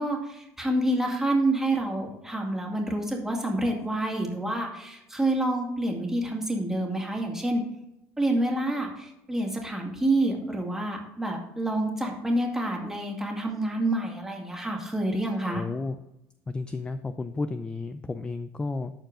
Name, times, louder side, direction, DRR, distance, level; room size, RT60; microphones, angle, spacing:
voice 1, 0.0-7.6 8.2-15.6, right 1 dB, 5° right, 0 dB, 2.2 m, -28 dB
voice 2, 15.5-16.0 16.5-18.9, left 3 dB, 15° left, 10 dB, 0.4 m, -32 dB
12.5 x 4.5 x 3.8 m, 0.86 s
supercardioid pair, 105°, 6 cm